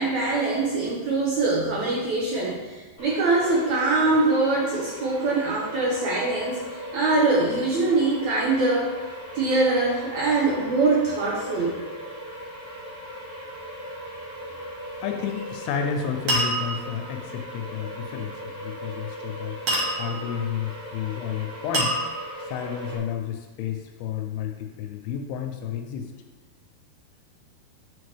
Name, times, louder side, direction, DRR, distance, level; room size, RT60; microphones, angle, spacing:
voice 1, 0.0-8.9 9.3-11.8, right 3 dB, 75° right, -4 dB, 1.7 m, -23 dB
sound 1, 3.0-23.0, equal, 30° left, 2.0 m, -38 dB
voice 2, 15.0-19.6 20.0-22.0 22.5-26.1, left 8 dB, 85° left, 4 dB, 2.6 m, -31 dB
sound 2, 15.2-15.6 16.3-17.0 19.7-20.4 21.7-22.6, right 1 dB, 60° right, 2.0 m, -27 dB
10.0 x 4.4 x 3.3 m, 1.2 s
omnidirectional pair, 4.7 m